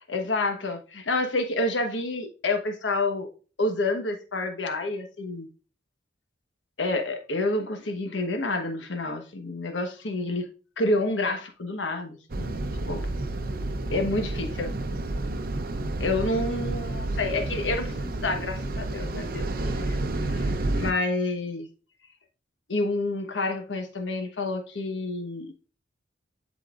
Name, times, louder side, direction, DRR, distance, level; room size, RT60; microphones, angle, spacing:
voice 1, 0.1-3.3 3.6-5.5 6.8-10.5 10.8-12.6 12.9-13.1 13.9-14.7 16.0-20.5 20.8-21.7 22.7-25.7, left 2 dB, 90° left, 1.2 m, -29 dB
sound 1, 12.3-20.9, right 2 dB, 50° right, 0.6 m, -30 dB
11.5 x 4.1 x 2.5 m
head